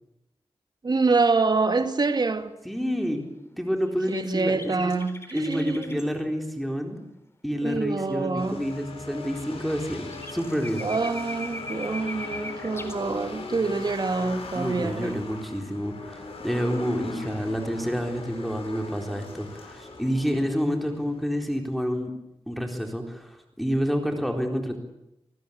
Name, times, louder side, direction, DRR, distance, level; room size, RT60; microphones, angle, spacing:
voice 1, 0.8-2.6 4.1-6.0 7.6-8.6 10.8-15.2, right 4 dB, 45° right, 2.2 m, -26 dB
voice 2, 2.6-3.2 3.6-4.9 5.3-7.0 7.4-10.9 14.5-22.1 22.5-24.8, equal, ahead, 4.0 m, -28 dB
sound 1, 3.9-6.0 9.7-9.8 10.1-13.0, left 2 dB, 25° left, 3.9 m, -40 dB
sound 2, 8.4-21.4, left 3 dB, 85° left, 7.6 m, -39 dB
26.5 x 19.5 x 8.7 m
wide cardioid pair, 100°, 10 cm